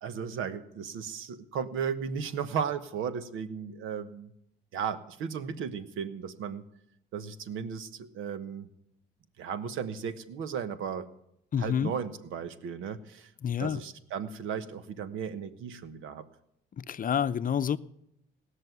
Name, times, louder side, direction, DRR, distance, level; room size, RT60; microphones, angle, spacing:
voice 1, 0.0-4.3 4.7-6.6 7.1-8.7 9.4-11.1 11.6-13.3 13.6-16.2, right 7 dB, 85° right, 13 dB, 1.2 m, -35 dB
voice 2, 11.5-11.9 13.4-13.8 16.8-17.8, left 8 dB, 45° left, 13 dB, 0.7 m, -28 dB
19.0 x 6.5 x 9.3 m, 0.78 s
cardioid pair, 90°, 20 cm